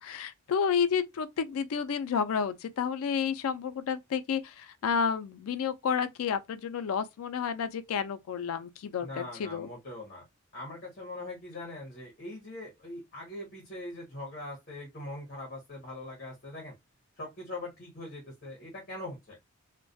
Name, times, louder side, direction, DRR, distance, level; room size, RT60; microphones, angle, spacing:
voice 1, 0.0-9.7, left 6 dB, 80° left, 0.4 m, -31 dB
voice 2, 9.0-10.2 10.5-16.7 17.2-19.4, left 2 dB, 40° left, 0.9 m, -42 dB
2.3 x 2.1 x 2.5 m
head